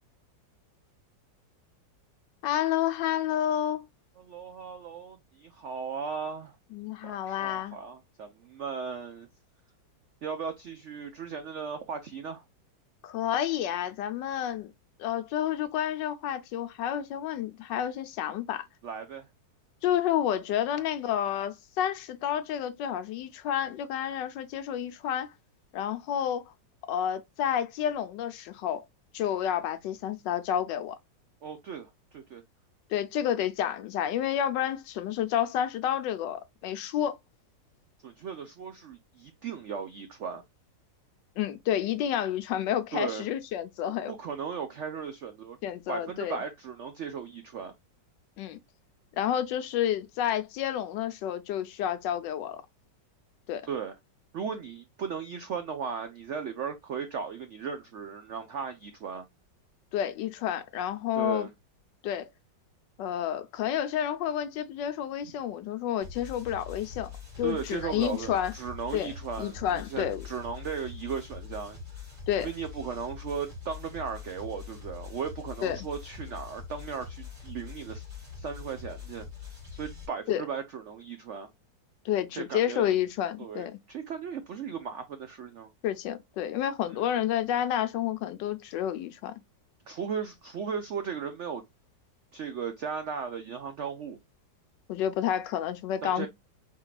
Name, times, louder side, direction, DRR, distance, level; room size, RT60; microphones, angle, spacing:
voice 1, 2.4-3.8 6.7-7.8 13.0-14.7 15.0-18.7 19.8-25.3 25.7-26.5 26.9-28.8 29.1-31.0 32.9-37.2 41.4-44.1 45.6-46.4 48.4-48.6 49.2-52.6 53.5-53.7 59.9-61.5 62.0-62.3 63.0-67.1 67.4-68.5 68.9-69.1 69.4-70.2 72.3-72.5 75.6-75.9 80.3-80.4 82.0-83.8 85.8-89.3 94.9-96.3, left 10 dB, 80° left, 1.3 m, -30 dB
voice 2, 4.2-6.6 7.0-9.3 10.2-12.4 18.8-19.3 20.7-20.8 21.1-21.2 31.4-32.4 38.0-40.4 42.9-43.3 44.1-45.6 45.9-47.7 53.6-53.9 54.3-59.2 61.1-61.5 67.4-71.8 72.4-78.0 78.4-79.3 79.7-81.5 82.3-82.9 83.4-85.7 89.9-91.6 92.3-94.2 96.0-96.3, right 6 dB, 80° right, 0.6 m, -36 dB
sound 1, 66.0-80.1, left 6 dB, 35° right, 2.9 m, -43 dB
4.6 x 3.6 x 2.3 m
omnidirectional pair, 2.0 m